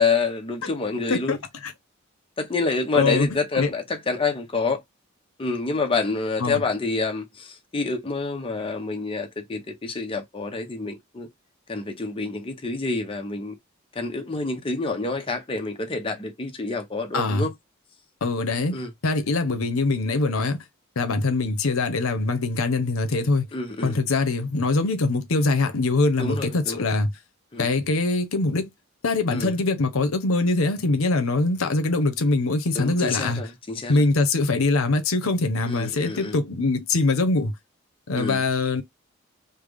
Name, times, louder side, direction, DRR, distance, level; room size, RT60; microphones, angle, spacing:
voice 1, 0.0-1.4 2.4-4.8 5.4-11.3 11.7-13.6 14.0-17.5 18.7-18.9 23.5-24.0 26.2-26.8 27.5-27.7 29.3-29.5 32.7-34.0 35.7-36.3 38.1-38.4, left 3 dB, 25° left, 0.6 m, -27 dB
voice 2, 2.9-3.3 3.6-3.7 6.4-6.6 17.1-17.5 18.2-18.8 19.0-20.6 21.0-23.5 23.8-27.1 27.6-28.7 29.0-33.4 33.9-37.5 38.1-38.8, left 3 dB, 85° left, 0.7 m, -23 dB
3.3 x 2.0 x 3.4 m
head